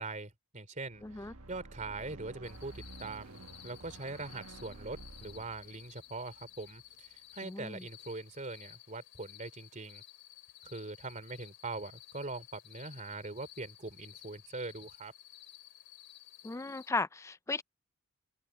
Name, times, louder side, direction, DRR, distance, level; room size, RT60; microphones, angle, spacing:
voice 1, 0.0-10.0 10.6-15.1, right 3 dB, 35° right, 3.0 m, -42 dB
sound 1, 0.8-7.2, right 2 dB, 85° right, 1.4 m, -52 dB
voice 2, 1.0-1.3 7.4-7.9 16.4-17.6, left 3 dB, 15° left, 0.4 m, -36 dB
sound 2, 2.4-16.9, left 14 dB, 55° left, 3.6 m, -55 dB
head